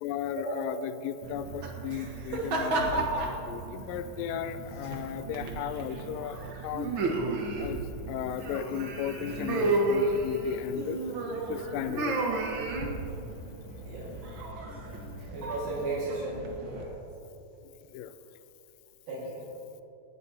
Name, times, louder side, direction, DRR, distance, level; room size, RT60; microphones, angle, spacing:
voice 1, 0.0-6.9 7.6-11.0 11.5-12.4 17.9-18.1, left 10 dB, 90° left, 11 dB, 2.3 m, -36 dB
sound 1, 1.2-16.8, right 2 dB, 60° right, 1.3 m, -33 dB
voice 2, 15.3-16.9 19.1-19.5, right 2 dB, 80° right, -7 dB, 3.8 m, -35 dB
18.5 x 10.5 x 2.9 m, 3.0 s
omnidirectional pair, 3.9 m